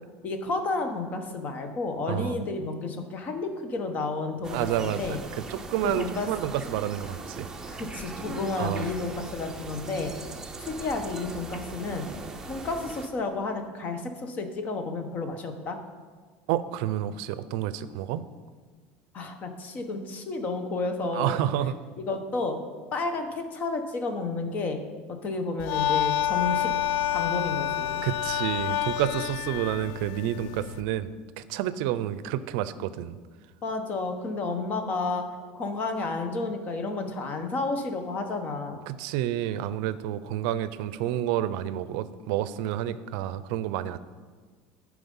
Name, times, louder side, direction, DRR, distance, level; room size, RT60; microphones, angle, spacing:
voice 1, 0.2-5.2 5.8-6.3 7.7-10.1 10.6-12.1 12.5-15.8 19.1-21.4 22.1-22.6 22.9-24.8 25.1-26.7 27.1-28.0 33.6-35.3 35.5-38.8, left 3 dB, 35° left, 7 dB, 1.0 m, -31 dB
voice 2, 2.1-2.4 4.5-5.0 5.5-7.5 8.6-8.9 16.5-18.2 21.1-21.7 28.0-33.2 38.9-44.0, right 12 dB, 75° right, 14 dB, 0.5 m, -29 dB
sound 1, 4.4-13.1, right 3 dB, 10° right, 0.7 m, -40 dB
sound 2, 25.6-30.8, left 11 dB, 75° left, 0.4 m, -28 dB
11.5 x 4.9 x 5.5 m, 1.5 s
cardioid pair, 150°, 5 cm